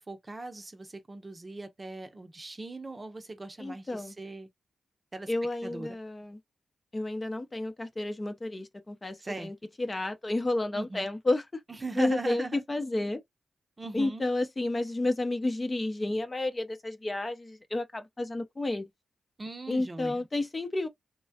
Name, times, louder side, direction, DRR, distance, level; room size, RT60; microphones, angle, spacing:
voice 1, 0.0-4.5 5.1-5.3 5.6-5.9 9.2-9.5 10.7-11.1 11.7-12.6 13.8-14.2 19.4-20.2, right 3 dB, 30° right, 0.7 m, -39 dB
voice 2, 3.6-4.2 5.3-6.4 6.9-11.6 12.0-13.2 13.9-18.9 19.7-20.9, left 2 dB, 30° left, 0.7 m, -31 dB
3.0 x 2.2 x 2.8 m
cardioid pair, 55°, 0 cm